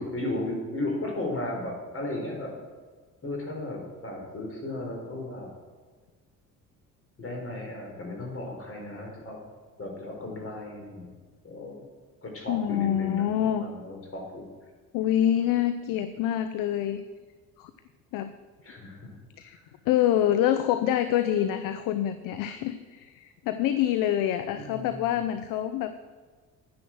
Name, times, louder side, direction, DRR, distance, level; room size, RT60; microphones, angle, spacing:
voice 1, 0.0-2.5 3.2-5.5 7.2-9.4 9.8-11.1 11.4-11.8 12.2-13.2 13.6-14.4 18.6-19.1 24.5-25.1, left 2 dB, 30° left, 0 dB, 4.4 m, -35 dB
voice 2, 12.5-13.6 14.9-17.0 17.6-17.7 18.1-18.3 19.4-19.6 19.9-25.9, left 11 dB, 45° left, 11 dB, 0.7 m, -26 dB
10.5 x 9.9 x 6.2 m, 1.4 s
figure-of-eight pair, 55°, 45 cm